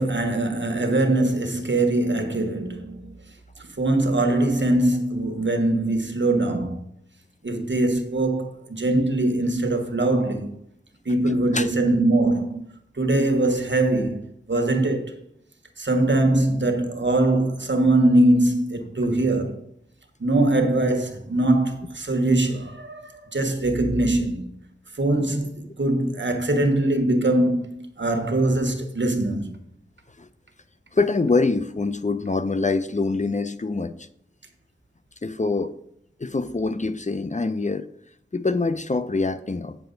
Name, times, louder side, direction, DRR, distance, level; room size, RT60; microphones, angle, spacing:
voice 1, 0.0-3.1 3.6-6.8 7.4-10.5 11.0-12.6 13.0-15.1 15.8-19.6 20.2-24.5 24.9-29.5, right 2 dB, 70° right, 1.2 m, -22 dB
voice 2, 30.9-34.1 35.2-35.7 36.2-37.9 38.3-39.8, left 3 dB, 40° left, 0.5 m, -24 dB
8.9 x 6.9 x 3.9 m
wide cardioid pair, 45°, 20 cm